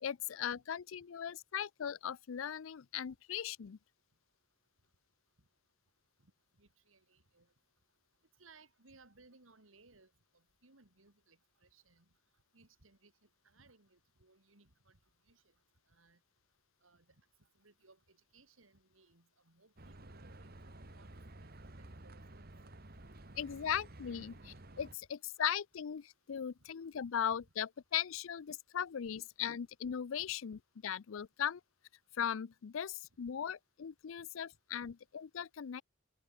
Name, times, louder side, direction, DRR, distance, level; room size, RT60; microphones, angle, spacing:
voice 1, 0.0-3.8 23.4-31.6 32.2-35.8, left 9 dB, 80° left, 0.5 m, -38 dB
voice 2, 6.6-7.5 8.4-12.0 12.5-13.1 13.4-15.0 15.3-15.4 15.9-16.2 16.8-17.0 17.6-22.5, right 3 dB, 85° right, 3.2 m, -65 dB
sound 1, 19.8-24.9, right 1 dB, 50° right, 2.1 m, -53 dB
head